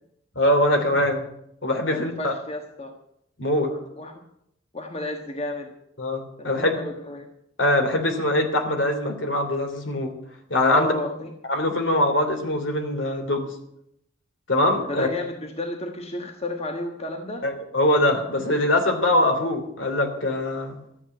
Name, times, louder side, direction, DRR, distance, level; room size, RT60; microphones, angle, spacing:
voice 1, 0.3-1.3 1.6-2.3 3.4-3.7 6.0-6.8 7.6-10.1 10.5-10.9 11.5-13.5 14.5-15.1 17.4-20.8, left 1 dB, 70° left, 5 dB, 3.1 m, -22 dB
voice 2, 1.9-2.9 3.7-4.2 4.7-5.7 6.4-7.3 10.7-11.3 14.9-17.4, left 1 dB, 30° left, 4 dB, 1.4 m, -32 dB
13.5 x 8.3 x 9.5 m, 0.76 s
head